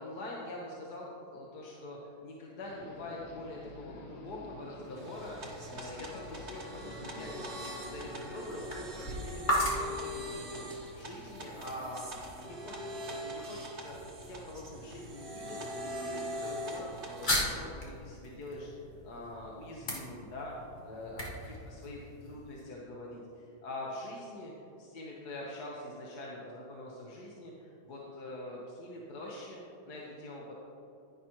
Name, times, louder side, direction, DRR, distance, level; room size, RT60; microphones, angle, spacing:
voice 1, 0.0-10.7 10.9-12.0 12.4-14.0 14.2-20.5 20.8-24.5 24.8-30.6, left 1 dB, 55° left, -3 dB, 1.4 m, -44 dB
sound 1, 2.6-8.1, left 2 dB, 80° left, 1.8 m, -49 dB
sound 2, 4.8-22.6, equal, 25° left, 1.5 m, -40 dB
sound 3, 5.0-17.5, equal, 35° right, 1.3 m, -42 dB
10.5 x 10.5 x 2.9 m, 2.6 s
omnidirectional pair, 2.3 m